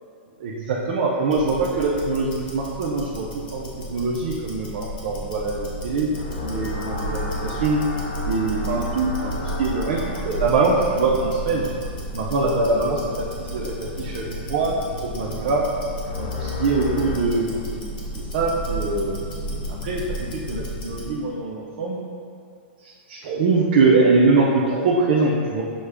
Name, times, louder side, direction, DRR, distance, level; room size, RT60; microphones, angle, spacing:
voice 1, 0.4-3.3 3.5-6.1 6.4-7.8 8.2-11.7 12.1-15.7 16.2-17.8 18.1-19.1 19.4-22.0 22.8-25.6, right 3 dB, 50° right, -4 dB, 0.5 m, -23 dB
Tick-tock, 1.2-21.2, equal, 50° left, 1.0 m, -33 dB
sound 1, 6.1-11.9 16.0-17.2, left 2 dB, 65° left, 0.6 m, -32 dB
6.3 x 2.2 x 3.4 m, 2.4 s
supercardioid pair, 165°, 6 cm